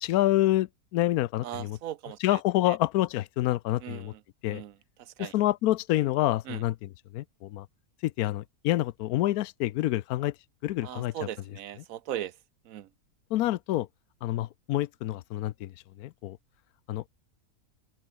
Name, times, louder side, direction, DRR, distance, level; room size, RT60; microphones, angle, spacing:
voice 1, 0.0-1.8 2.2-4.1 4.4-4.6 5.2-7.7 8.0-10.3 10.6-11.1 13.3-13.9 14.2-15.7 16.0-16.4 16.9-17.0, left 15 dB, 85° left, 1.1 m, -27 dB
voice 2, 1.4-2.4 2.7-2.8 3.8-4.2 4.5-4.7 5.0-5.3 6.5-6.6 10.8-12.3 12.6-12.9, right 11 dB, 70° right, 1.2 m, -38 dB
open air
omnidirectional pair, 1.5 m